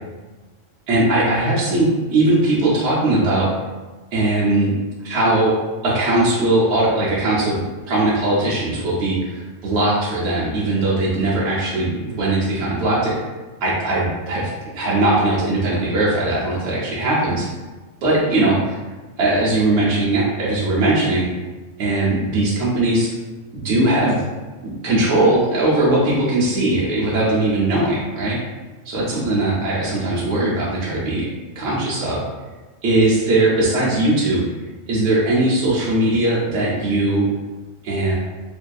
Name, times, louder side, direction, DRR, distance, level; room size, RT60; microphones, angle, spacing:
voice 1, 0.9-3.5 4.1-4.7 5.0-5.6 5.8-13.2 13.6-17.5 18.0-18.8 19.2-21.3 21.8-23.1 23.5-24.2 24.6-28.4 28.8-31.3 31.6-32.2 32.8-34.4 34.9-37.3 37.8-38.2, right 2 dB, 65° right, -7 dB, 0.8 m, -19 dB
2.6 x 2.2 x 2.3 m, 1.2 s
omnidirectional pair, 1.3 m